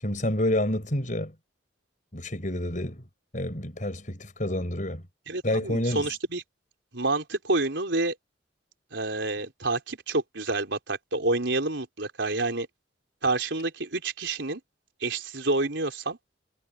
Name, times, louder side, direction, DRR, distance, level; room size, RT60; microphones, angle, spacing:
voice 1, 0.0-1.3 2.1-3.0 3.3-5.0 5.4-6.1, left 1 dB, 45° left, 5.8 m, -28 dB
voice 2, 5.3-6.4 6.9-8.1 8.9-12.7 13.2-14.6 15.0-16.2, right 2 dB, 70° right, 4.5 m, -28 dB
head